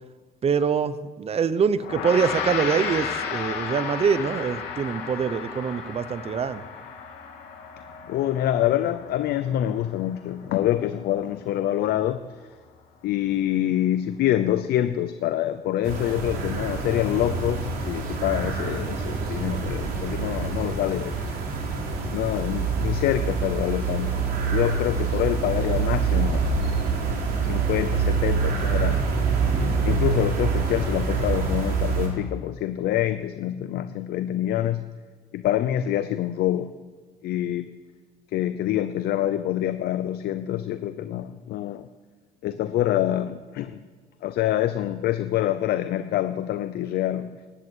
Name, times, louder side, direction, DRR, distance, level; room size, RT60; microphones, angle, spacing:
voice 1, 0.4-6.6, right 6 dB, 35° right, 14 dB, 0.9 m, -24 dB
Gong, 1.8-11.4, left 6 dB, 85° left, 3.0 m, -34 dB
voice 2, 8.1-12.2 13.0-21.1 22.1-26.8 27.5-29.1 29.8-34.8 35.3-36.7 37.2-37.7 38.3-41.8 42.4-43.8 44.2-47.4, left 12 dB, 70° left, 11 dB, 0.7 m, -26 dB
sound 1, 15.8-32.1, right 5 dB, 65° right, 4.2 m, -26 dB
16.5 x 11.0 x 8.1 m, 1.5 s
cardioid pair, 110°, 17 cm